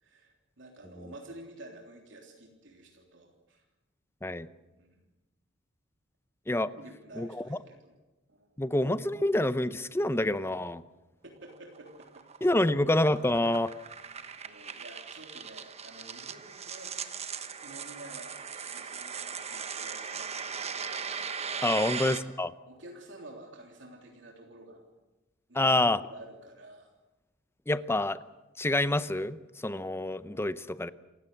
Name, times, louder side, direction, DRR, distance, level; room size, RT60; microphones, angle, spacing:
voice 1, 0.0-3.6 4.6-5.0 6.7-8.0 8.3-8.6 11.2-12.2 12.5-12.8 14.4-16.9 17.6-20.6 22.7-24.8 25.5-25.8 26.1-26.9, right 1 dB, 70° right, 1 dB, 3.3 m, -50 dB
voice 2, 7.1-7.6 8.6-10.8 12.4-13.7 21.6-22.5 25.5-26.0 27.7-28.2 28.6-30.9, left 1 dB, 15° left, 14 dB, 0.7 m, -27 dB
sound 1, 11.5-22.2, right 6 dB, 35° right, 1.2 m, -39 dB
28.0 x 15.5 x 7.9 m, 1.1 s
head